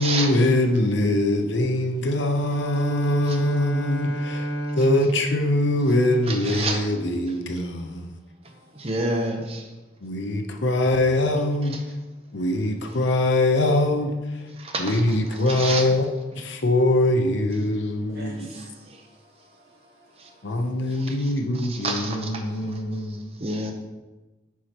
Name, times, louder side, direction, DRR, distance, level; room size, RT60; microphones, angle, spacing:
voice 1, 0.0-8.1 10.0-11.8 12.3-14.5 14.8-16.1 16.3-18.5 20.4-23.3, left 1 dB, 85° left, 5 dB, 0.8 m, -23 dB
Bowed string instrument, 2.3-6.4, right 1 dB, 5° left, 2.0 m, -32 dB
voice 2, 6.3-6.8 8.8-9.7 14.6-15.0 15.5-15.8 21.0-21.3 21.5-22.4 23.4-23.7, right 2 dB, 35° right, 3 dB, 0.8 m, -28 dB
voice 3, 8.4-8.9 18.1-20.7, left 1 dB, 55° right, -4 dB, 1.9 m, -48 dB
10.0 x 4.8 x 3.0 m, 1.1 s
head